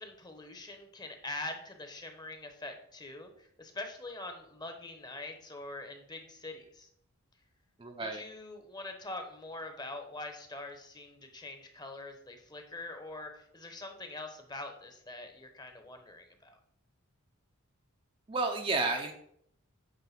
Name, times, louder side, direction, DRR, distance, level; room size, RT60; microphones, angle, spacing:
voice 1, 0.0-6.9 8.0-16.6, left 2 dB, 20° left, 6 dB, 0.9 m, -44 dB
voice 2, 7.8-8.2 18.3-19.1, right 3 dB, 25° right, 3 dB, 0.6 m, -31 dB
9.0 x 3.3 x 5.8 m, 0.69 s
head